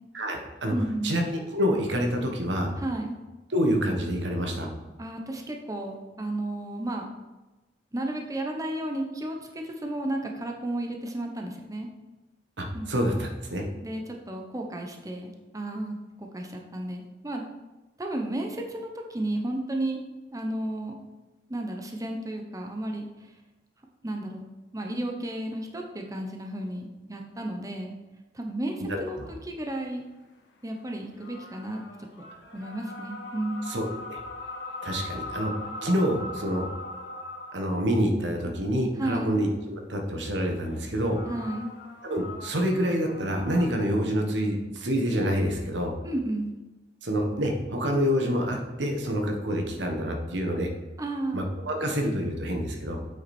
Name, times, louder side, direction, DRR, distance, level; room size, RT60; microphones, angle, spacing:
voice 1, 0.1-0.7 1.0-2.7 3.5-4.7 12.6-13.7 28.8-29.3 33.7-34.2 34.8-36.7 37.5-41.3 42.0-45.9 47.0-50.7 51.3-53.0, equal, 85° right, 2 dB, 1.5 m, -27 dB
voice 2, 0.7-1.2 2.8-3.2 5.0-7.0 7.9-11.9 12.7-13.0 13.8-17.4 18.0-20.0 20.3-20.9 21.5-23.3 24.0-24.4 24.7-27.9 28.3-30.0 30.6-31.8 32.5-33.7 39.0-39.4 41.3-41.7 46.0-46.5 51.0-51.4, right 1 dB, 20° right, 2 dB, 0.9 m, -33 dB
sound 1, 30.9-37.7 40.6-43.7, left 2 dB, 90° left, 1.4 m, -40 dB
8.1 x 6.6 x 4.4 m, 1.1 s
head